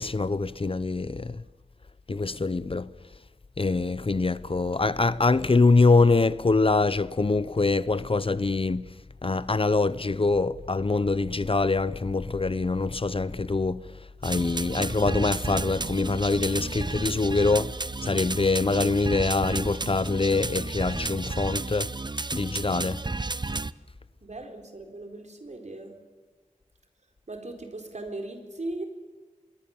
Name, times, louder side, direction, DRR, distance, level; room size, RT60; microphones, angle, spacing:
voice 1, 0.0-1.4 2.1-2.9 3.6-8.9 9.2-21.9 22.3-23.0, left 3 dB, 45° left, 0.7 m, -24 dB
sound 1, 14.2-23.7, right 3 dB, 35° right, 0.6 m, -32 dB
voice 2, 24.2-25.9 27.3-28.8, right 2 dB, 60° right, 4.1 m, -38 dB
26.5 x 22.0 x 7.1 m
wide cardioid pair, 50°, 13 cm